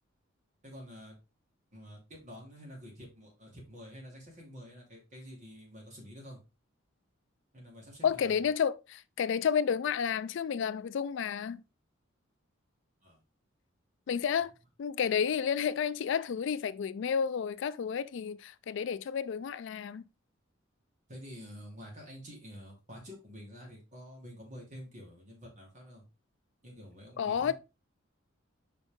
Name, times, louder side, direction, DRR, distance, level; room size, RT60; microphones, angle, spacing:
voice 1, 0.6-1.2 1.7-6.4 7.5-8.4 13.0-13.2 21.1-26.0 26.6-27.5, equal, 35° right, 2.7 m, -48 dB
voice 2, 8.0-11.6 14.1-14.5 14.8-20.0 27.2-27.5, left 7 dB, 65° left, 0.3 m, -31 dB
5.4 x 5.1 x 3.6 m
head